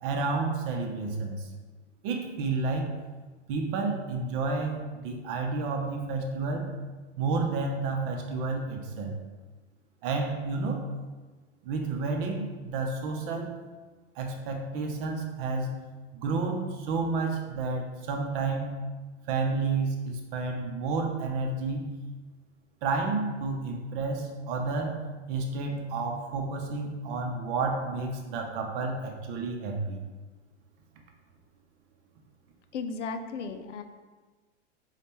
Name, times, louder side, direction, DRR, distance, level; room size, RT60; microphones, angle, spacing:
voice 1, 0.0-1.5 2.0-2.9 3.5-6.7 7.2-9.1 10.0-10.8 11.6-13.5 14.2-15.7 16.1-18.8 19.3-21.9 22.8-25.0 25.3-30.0, right 3 dB, 50° right, 2 dB, 0.8 m, -30 dB
voice 2, 32.7-33.8, left 4 dB, 90° left, 7 dB, 0.5 m, -35 dB
5.1 x 2.4 x 3.0 m, 1.3 s
hypercardioid pair, 110°, 35 cm